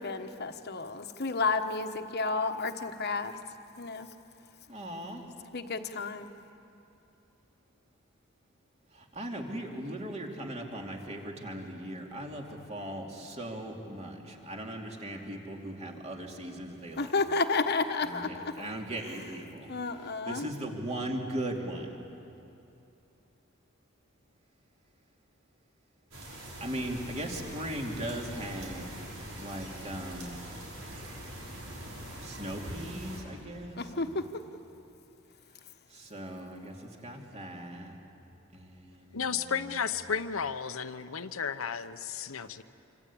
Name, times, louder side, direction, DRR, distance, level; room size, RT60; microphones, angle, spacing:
voice 1, 0.0-3.4 3.8-4.1 5.5-6.3 17.0-18.7 19.7-20.5 33.8-34.4, left 3 dB, 50° left, 7 dB, 1.3 m, -31 dB
voice 2, 4.7-5.2 8.9-17.1 18.0-19.7 20.0-21.9 26.6-28.9 29.4-30.4 32.2-34.1 35.9-38.0 38.5-39.5, right 1 dB, 30° right, 1 dB, 2.8 m, -38 dB
sound 1, 26.1-33.2, right 1 dB, 85° right, 6.1 m, -43 dB
voice 3, 39.1-42.6, left 6 dB, 85° left, 10 dB, 1.0 m, -33 dB
27.0 x 25.5 x 8.7 m, 2.8 s
head